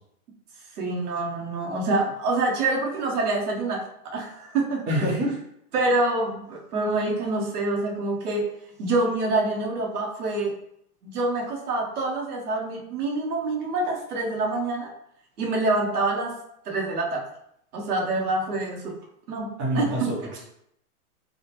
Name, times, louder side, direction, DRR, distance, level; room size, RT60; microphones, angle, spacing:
voice 1, 0.8-3.8 4.1-4.8 5.7-8.5 8.8-10.5 11.0-14.9 15.4-16.4 16.7-17.3 17.7-19.0 19.3-19.5 19.7-19.9, right 2 dB, 85° right, 0 dB, 1.0 m, -26 dB
voice 2, 4.9-5.4 19.6-20.4, equal, 25° right, -5 dB, 1.0 m, -26 dB
3.3 x 2.3 x 2.9 m, 0.72 s
hypercardioid pair, 140°, 45 cm